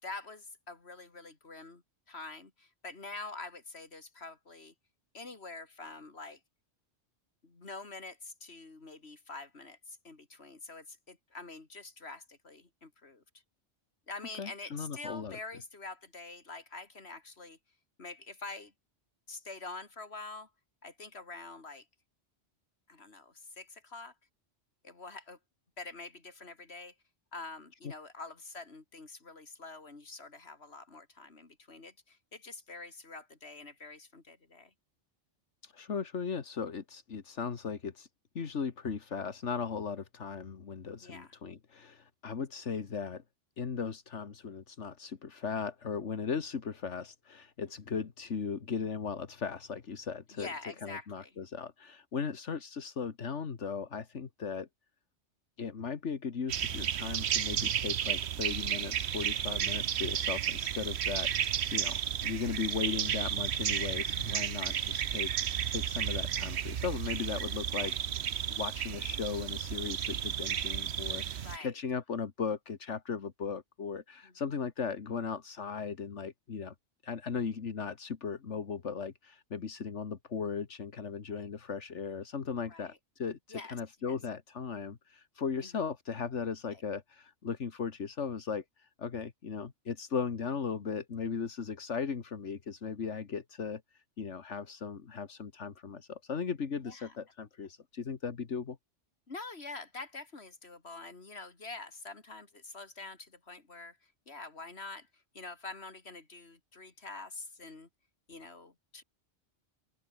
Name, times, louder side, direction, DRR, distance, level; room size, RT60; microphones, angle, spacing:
voice 1, 0.0-4.7 5.1-6.4 7.4-13.2 14.1-17.6 18.0-18.7 19.3-20.5 20.8-21.9 22.9-24.1 24.8-25.4 25.8-26.9 27.3-34.7 41.0-41.3 50.3-51.3 67.8-68.0 71.4-71.7 74.2-74.3 81.3-81.5 82.7-83.0 83.5-83.8 84.0-84.2 85.6-85.7 86.7-86.8 96.8-97.1 99.3-107.9 108.3-109.0, left 3 dB, 65° left, 3.3 m, -46 dB
voice 2, 14.4-15.4 27.8-27.9 35.6-38.1 38.4-43.2 43.6-50.5 50.8-54.7 55.6-68.0 68.5-76.8 77.0-98.8, left 6 dB, 80° left, 1.9 m, -37 dB
sound 1, 56.5-71.6, right 9 dB, 70° right, 1.1 m, -33 dB
open air
omnidirectional pair, 1.2 m